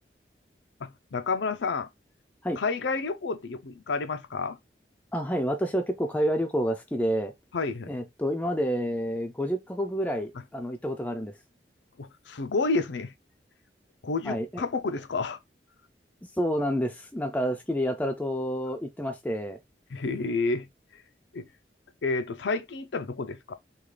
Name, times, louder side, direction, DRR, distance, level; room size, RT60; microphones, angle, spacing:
voice 1, 0.8-1.9 2.6-4.6 7.5-8.0 12.0-13.1 14.0-15.4 19.9-20.7 21.3-21.5 22.0-23.5, left 3 dB, 90° left, 0.5 m, -30 dB
voice 2, 5.1-7.3 7.9-11.3 14.3-14.6 16.4-19.6, equal, 10° left, 0.4 m, -29 dB
3.6 x 2.4 x 3.2 m
head